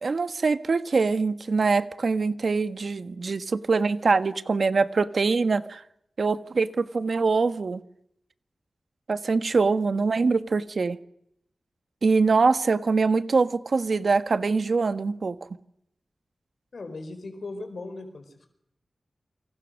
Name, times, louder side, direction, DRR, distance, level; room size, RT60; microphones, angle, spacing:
voice 1, 0.0-5.8 6.2-7.8 9.1-11.0 12.0-15.4, right 4 dB, 65° right, 1.4 m, -23 dB
voice 2, 16.7-18.5, left 2 dB, 65° left, 4.4 m, -38 dB
28.5 x 26.0 x 6.5 m
wide cardioid pair, 100°, 0 cm